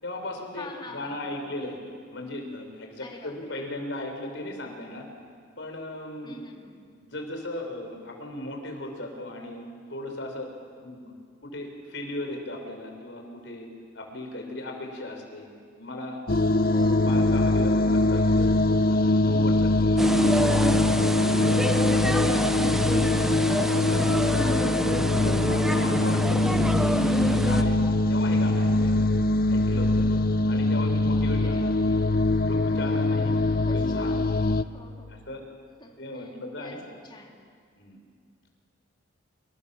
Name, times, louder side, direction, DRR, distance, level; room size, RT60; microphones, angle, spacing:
voice 1, 0.0-1.8 2.1-5.1 5.6-6.4 6.9-10.5 10.8-11.1 11.4-13.7 13.9-15.5 15.8-16.7 17.0-18.6 18.9-21.5 21.9-23.0 23.4-24.7 25.2-26.7 27.3-27.8 28.1-29.0 29.5-30.1 30.5-31.6 32.4-34.5 35.1-35.4 36.0-36.8 37.8-38.0, left 1 dB, 65° left, 3 dB, 5.4 m, -37 dB
voice 2, 0.5-1.4 3.0-3.6 6.2-6.8 16.7-17.4 24.3-25.1 31.4-32.1 33.7-34.2 34.7-35.2 35.8-36.3 36.6-37.4, left 2 dB, 25° left, 0 dB, 3.7 m, -45 dB
sound 1, 16.3-34.6, left 2 dB, 50° left, 0.7 m, -23 dB
sound 2, 20.0-27.6, equal, ahead, 1.0 m, -27 dB
28.0 x 28.0 x 7.4 m, 2.2 s
head